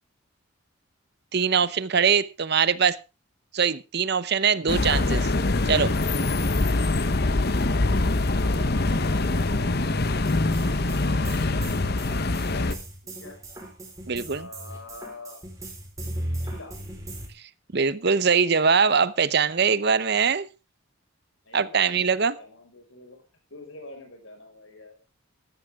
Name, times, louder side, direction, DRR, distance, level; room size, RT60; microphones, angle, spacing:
voice 1, 1.3-3.0 3.5-5.3 5.7-5.9 14.1-14.4 17.7-20.5 21.5-22.3, right 6 dB, 50° right, 0.7 m, -22 dB
sound 1, 4.7-12.7, left 2 dB, 50° left, 1.0 m, -24 dB
voice 2, 7.9-9.8 10.1-11.1 11.6-12.0 13.0-13.4 14.2-15.4 16.4-16.8 21.4-23.2 23.5-25.0, left 2 dB, 70° left, 5.5 m, -45 dB
sound 2, 10.2-17.3, right 1 dB, 15° right, 4.2 m, -37 dB
15.0 x 13.0 x 3.6 m
head